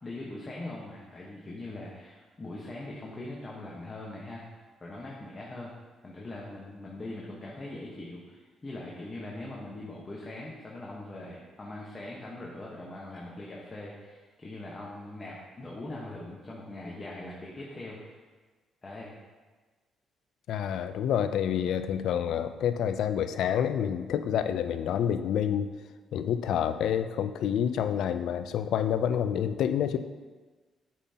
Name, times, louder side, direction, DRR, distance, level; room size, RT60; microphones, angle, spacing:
voice 1, 0.0-4.5 4.8-5.7 6.0-18.2 18.8-19.2, left 2 dB, 30° left, -4 dB, 1.1 m, -41 dB
voice 2, 20.5-25.7 26.1-30.0, left 9 dB, 75° left, 10 dB, 0.4 m, -28 dB
8.1 x 5.6 x 2.8 m, 1.3 s
cardioid pair, 90°, 0 cm